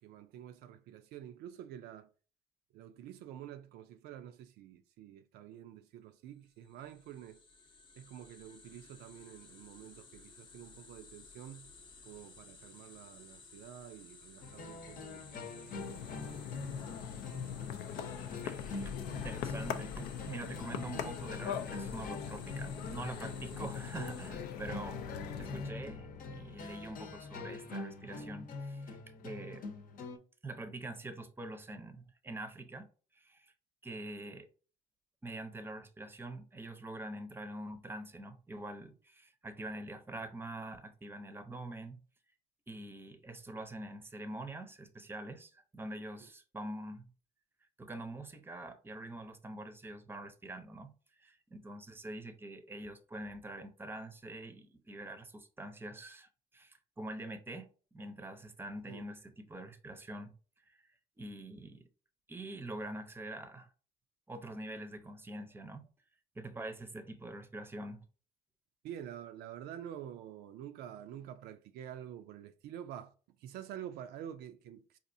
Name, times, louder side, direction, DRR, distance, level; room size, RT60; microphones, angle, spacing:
voice 1, 0.0-2.1 2.7-7.4 7.9-11.7 12.0-17.0 46.2-46.3 58.9-59.0 68.8-75.0, right 10 dB, 70° right, 0.4 m, -48 dB
sound 1, 6.6-24.3, left 4 dB, 25° left, 0.7 m, -56 dB
sound 2, 14.4-30.2, left 3 dB, 55° left, 0.8 m, -45 dB
sound 3, 15.7-25.7, left 8 dB, 75° left, 0.5 m, -41 dB
voice 2, 18.4-25.0 25.4-29.7 30.4-33.5 33.8-34.5 35.2-42.0 42.7-47.1 47.8-60.3 60.7-60.9 61.2-61.9 62.3-63.7 64.3-65.9 66.3-68.0, right 1 dB, 15° right, 0.6 m, -45 dB
4.1 x 2.5 x 2.6 m
supercardioid pair, 80°, 17 cm